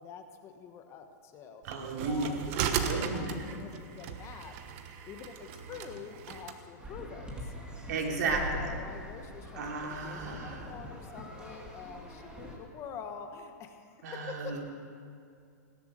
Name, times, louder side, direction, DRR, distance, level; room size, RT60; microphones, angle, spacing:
voice 1, 0.0-1.6 2.0-4.5 5.0-7.5 8.2-14.6, left 6 dB, 30° left, 6 dB, 1.2 m, -46 dB
voice 2, 1.6-2.3 2.8-3.5 7.9-8.7 9.5-10.7 14.0-14.6, right 4 dB, 65° right, 0 dB, 3.2 m, -34 dB
sound 1, 1.7-6.6, right 8 dB, 45° right, 1.2 m, -36 dB
sound 2, 6.8-12.6, left 1 dB, 10° right, 2.1 m, -43 dB
17.5 x 11.0 x 6.5 m, 2.4 s
hypercardioid pair, 140°, 10 cm